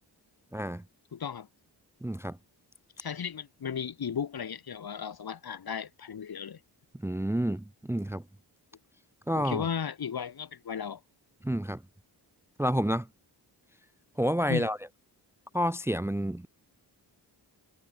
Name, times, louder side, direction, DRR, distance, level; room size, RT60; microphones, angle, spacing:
voice 1, 0.5-0.8 2.0-2.4 7.0-8.2 9.3-9.7 11.4-11.8 12.6-13.1 14.2-14.8 15.5-16.5, equal, 5° right, 0.6 m, -29 dB
voice 2, 1.1-1.5 3.0-6.6 9.4-11.0 14.5-14.7, left 7 dB, 65° left, 2.2 m, -35 dB
wide cardioid pair, 120°, 40 cm